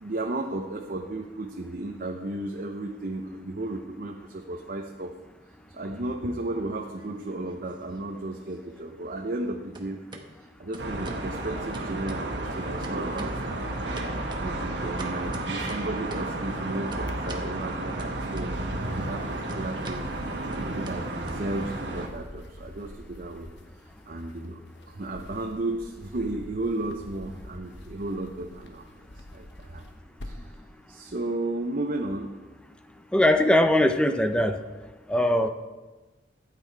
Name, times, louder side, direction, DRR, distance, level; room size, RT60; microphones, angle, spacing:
voice 1, 0.0-5.1 5.7-10.0 10.6-13.6 14.4-20.0 20.6-23.5 24.1-24.6 24.9-28.9 29.3-29.8 30.2-30.5 30.9-32.3, right 2 dB, 55° right, 2 dB, 0.8 m, -34 dB
sound 1, 6.6-7.6 7.9-9.5 9.7-10.3 10.7-11.3 11.7-12.5 12.8-13.5 14.0-16.4 16.9-17.5 18.0-18.8 19.1-21.9, right 2 dB, 25° right, 1.1 m, -44 dB
sound 2, 10.8-22.1, right 2 dB, 75° right, 1.5 m, -32 dB
sound 3, 12.4-14.6 14.9-16.5 16.8-17.9 18.4-30.6, left 1 dB, 80° left, 1.2 m, -48 dB
voice 2, 33.1-34.6 35.1-35.5, left 1 dB, 5° left, 8 dB, 0.5 m, -21 dB
12.5 x 8.5 x 4.6 m, 1.2 s
head